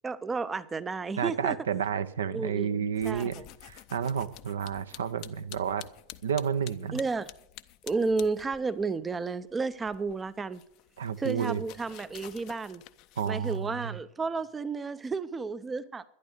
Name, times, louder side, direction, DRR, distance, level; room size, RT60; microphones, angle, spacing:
voice 1, 0.0-1.6 2.3-3.4 6.9-7.3 7.8-10.6 11.2-12.8 13.3-16.0, right 4 dB, 15° right, 0.5 m, -32 dB
voice 2, 1.2-5.8 6.2-7.0 11.0-11.6 13.2-14.0, right 7 dB, 65° right, 0.7 m, -31 dB
sound 1, 2.9-8.8 9.1-13.7, left 15 dB, 40° left, 0.6 m, -50 dB
11.5 x 11.0 x 6.5 m
figure-of-eight pair, 90°, 0 cm